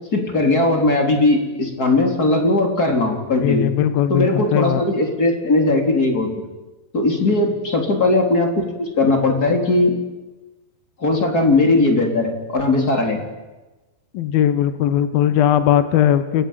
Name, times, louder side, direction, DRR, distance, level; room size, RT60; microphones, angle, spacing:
voice 1, 0.1-3.7 4.1-6.4 6.9-9.9 11.0-13.2, left 2 dB, 20° left, 3 dB, 3.7 m, -18 dB
voice 2, 3.4-4.8 14.1-16.5, left 10 dB, 70° left, 11 dB, 2.8 m, -18 dB
29.5 x 21.0 x 8.9 m, 1.2 s
omnidirectional pair, 5.0 m